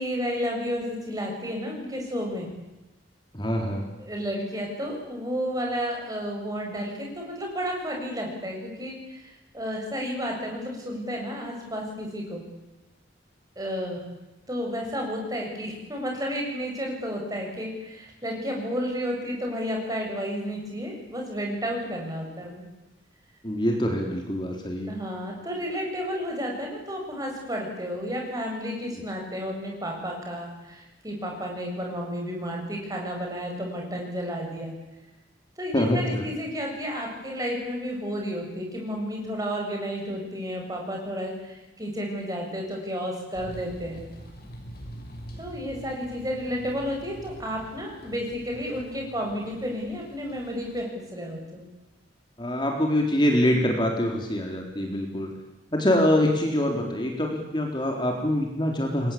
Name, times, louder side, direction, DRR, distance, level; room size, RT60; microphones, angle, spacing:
voice 1, 0.0-2.5 4.0-12.4 13.6-14.0 14.5-22.6 24.9-34.7 35.6-44.0 45.4-51.6, equal, 20° right, 0 dB, 7.9 m, -32 dB
voice 2, 3.3-3.8 23.4-24.9 35.7-36.2 52.4-55.3 55.7-59.1, left 1 dB, 25° left, 1 dB, 3.8 m, -24 dB
sound 1, 43.3-50.9, equal, 55° left, 6.7 m, -44 dB
29.5 x 22.0 x 8.7 m, 0.97 s
head